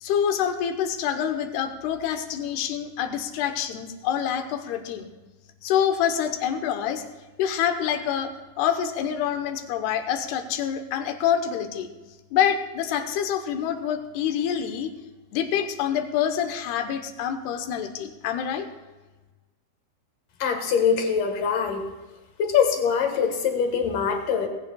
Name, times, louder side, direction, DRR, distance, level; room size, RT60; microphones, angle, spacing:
voice 1, 0.0-5.1 5.6-7.0 7.4-8.3 8.6-11.9 12.3-14.9 15.3-18.7, left 9 dB, 90° left, 7 dB, 3.0 m, -26 dB
voice 2, 20.4-21.9 22.4-24.5, left 7 dB, 65° left, 4 dB, 2.8 m, -23 dB
19.0 x 16.5 x 2.3 m, 1.2 s
omnidirectional pair, 4.5 m